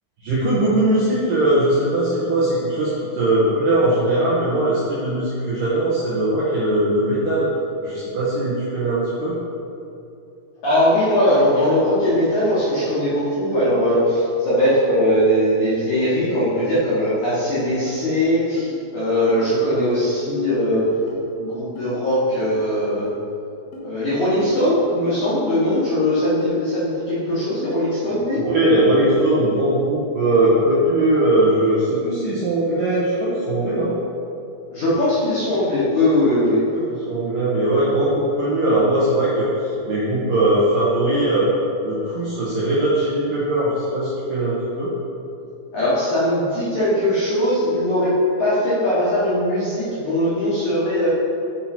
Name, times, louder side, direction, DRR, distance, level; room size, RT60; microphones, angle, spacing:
voice 1, 0.2-7.5 7.8-9.3 28.3-33.9 37.1-41.5 41.8-44.9, right 1 dB, 80° right, -8 dB, 2.0 m, -20 dB
voice 2, 10.6-20.9 21.4-23.1 23.8-28.4 34.7-36.6 45.7-48.1 48.4-51.1, left 1 dB, 70° left, -10 dB, 1.8 m, -20 dB
sound 1, 17.9-18.0 18.6-18.7 19.3-19.4 20.3-20.4 21.1-21.2 21.8-21.9 22.4-22.6 23.1-23.2 23.7-23.9 24.4-24.5 25.1-25.2 25.7-25.9 26.4-26.6 27.1-27.2 27.7-27.8, equal, 85° left, 3.3 m, -39 dB
8.5 x 4.4 x 4.3 m, 2.7 s
omnidirectional pair, 5.3 m